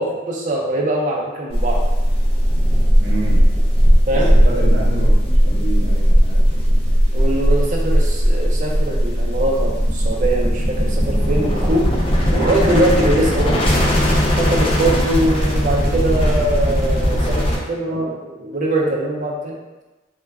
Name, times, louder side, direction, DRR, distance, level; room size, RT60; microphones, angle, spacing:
voice 1, 0.0-1.8 4.1-4.3 7.1-11.9 12.3-19.6, right 1 dB, 40° right, -1 dB, 0.4 m, -22 dB
sound 1, 1.5-17.6, equal, 30° left, 0.4 m, -17 dB
voice 2, 3.0-3.5 4.1-7.0 17.9-18.1, right 2 dB, 70° right, -4 dB, 0.7 m, -29 dB
2.2 x 2.1 x 3.4 m, 1.1 s
head